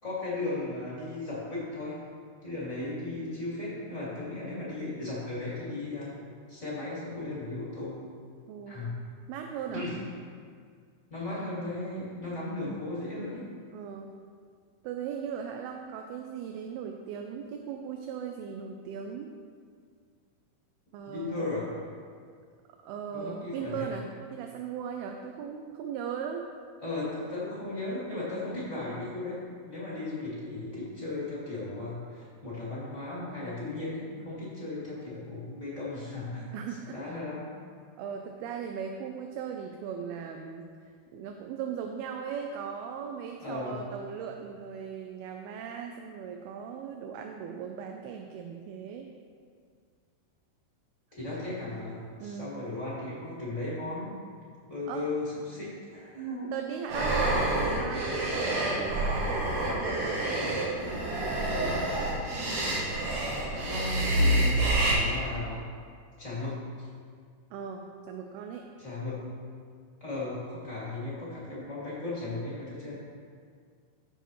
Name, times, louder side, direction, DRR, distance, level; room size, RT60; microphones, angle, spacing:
voice 1, 0.0-2.0 2.4-6.1 6.5-8.0 8.7-8.9 9.7-10.0 11.1-13.4 21.0-21.7 23.1-23.9 26.8-36.5 36.9-37.5 43.4-43.8 51.1-54.2 54.7-56.5 57.0-57.1 63.5-65.6 66.2-66.9 68.8-69.2 70.0-73.0, left 2 dB, 25° left, -8 dB, 1.8 m, -36 dB
voice 2, 8.5-8.9 9.3-9.9 13.7-14.1 14.8-19.3 20.9-21.5 22.8-26.5 36.5-37.2 38.0-40.7 41.1-49.1 52.2-52.5 54.9-55.1 56.5-62.0 67.5-68.6, right 7 dB, 80° right, 3 dB, 2.4 m, -38 dB
sound 1, 56.9-64.9, right 1 dB, 60° right, 3.1 m, -28 dB
14.5 x 7.0 x 3.1 m, 2.1 s
omnidirectional pair, 4.7 m